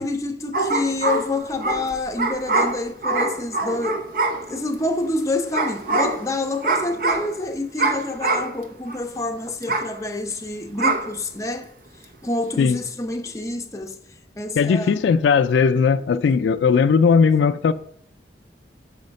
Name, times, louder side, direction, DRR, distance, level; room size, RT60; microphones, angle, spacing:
voice 1, 0.0-4.0 4.4-11.7 12.2-14.0 14.4-15.0, left 2 dB, 20° left, 0.6 m, -27 dB
sound 1, 0.5-4.7 5.5-6.3 6.6-7.4 7.8-8.6 8.9-9.0 9.6-9.9 10.8-11.1, right 3 dB, 50° right, 0.8 m, -24 dB
voice 2, 14.6-17.7, left 5 dB, 90° left, 0.3 m, -18 dB
6.4 x 4.9 x 5.2 m
head